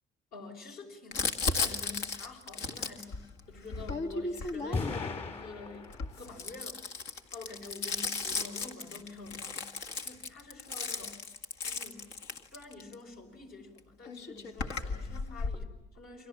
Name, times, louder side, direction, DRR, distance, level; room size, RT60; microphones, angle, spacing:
voice 1, 0.3-3.2 3.5-5.9 6.2-6.8 7.3-11.2 11.6-12.1 12.5-16.3, left 3 dB, 70° left, 3 dB, 5.7 m, -47 dB
Crumpling crinkling, 1.1-5.2 5.8-12.9 13.8-13.9 14.1-15.6, left 4 dB, 85° left, 2.0 m, -35 dB
sound 1, 4.7-6.3, left 4 dB, 40° left, 2.9 m, -37 dB
30.0 x 25.0 x 7.5 m, 1.0 s
cardioid pair, 110°, 17 cm